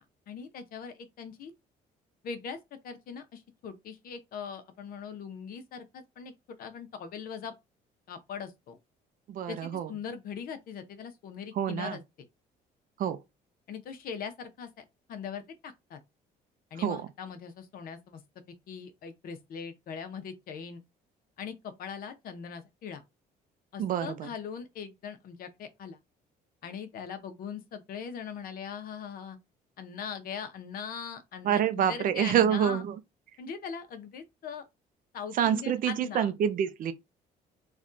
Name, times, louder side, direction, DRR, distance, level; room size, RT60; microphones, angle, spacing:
voice 1, 0.3-1.5 2.2-6.3 6.6-7.5 8.1-8.8 9.5-12.3 13.7-14.8 15.1-16.0 16.7-18.2 18.7-20.8 21.4-23.0 23.7-26.0 26.6-29.4 29.8-32.8 33.4-34.6 35.1-36.3, left 6 dB, 60° left, 0.7 m, -41 dB
voice 2, 9.3-9.9 11.6-12.0 13.0-13.2 16.8-17.1 23.8-24.3 31.4-33.0 35.3-36.9, right 9 dB, 55° right, 0.5 m, -27 dB
3.3 x 2.3 x 2.5 m
cardioid pair, 110°, 17 cm